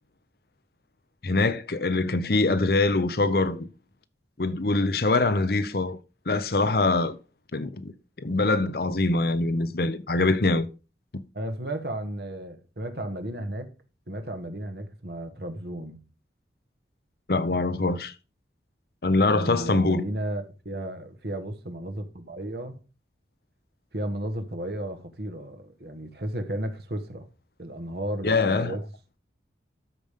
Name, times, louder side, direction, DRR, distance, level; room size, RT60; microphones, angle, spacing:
voice 1, 1.2-3.7 4.4-6.0 6.3-7.2 7.5-10.7 11.1-11.2 17.3-18.1 19.0-20.0 28.2-28.8, left 3 dB, 55° left, 0.8 m, -24 dB
voice 2, 11.3-13.7 14.1-16.0 19.2-22.8 23.9-27.3 27.6-28.8, right 1 dB, 60° right, 1.5 m, -34 dB
13.0 x 5.2 x 3.7 m
head